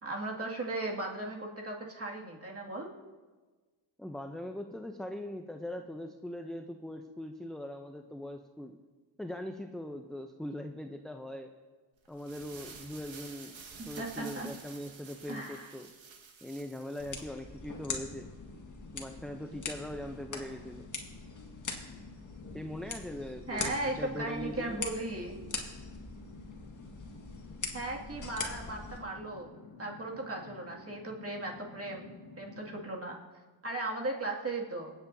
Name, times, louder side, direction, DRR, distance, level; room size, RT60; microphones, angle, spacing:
voice 1, 0.0-2.9 14.0-14.5 15.3-15.7 23.5-25.4 27.7-29.5 29.8-33.2 33.6-34.9, right 2 dB, 30° right, -1 dB, 2.3 m, -37 dB
voice 2, 4.0-8.8 9.2-11.5 12.1-13.6 13.8-15.9 16.4-18.3 18.9-20.9 22.5-24.8, left 1 dB, ahead, 5 dB, 0.6 m, -41 dB
sound 1, 12.0-17.2, right 5 dB, 75° right, 1.7 m, -50 dB
sound 2, 17.0-29.0, left 4 dB, 40° left, 1.8 m, -42 dB
sound 3, 17.5-32.9, left 4 dB, 75° left, 1.9 m, -52 dB
24.5 x 8.3 x 2.7 m, 1.3 s
cardioid pair, 80°, 46 cm